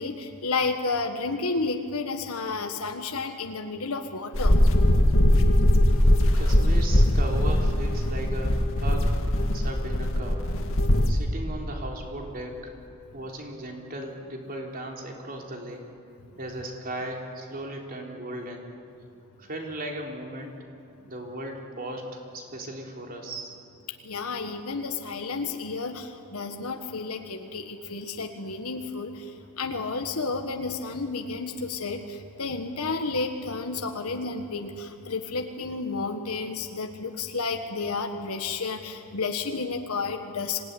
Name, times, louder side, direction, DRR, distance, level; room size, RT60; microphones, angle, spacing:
voice 1, 0.0-4.5 9.4-9.5 24.0-29.3 29.6-40.6, left 4 dB, 80° left, 5 dB, 1.5 m, -31 dB
sound 1, 4.3-11.1, left 1 dB, 65° left, 2.1 m, -21 dB
voice 2, 6.4-9.1 9.5-10.4 11.1-12.7 13.1-15.8 16.4-18.7 19.4-20.5 21.1-22.1 22.3-23.5, right 1 dB, 40° right, 1 dB, 3.8 m, -36 dB
26.0 x 18.0 x 9.9 m, 2.7 s
head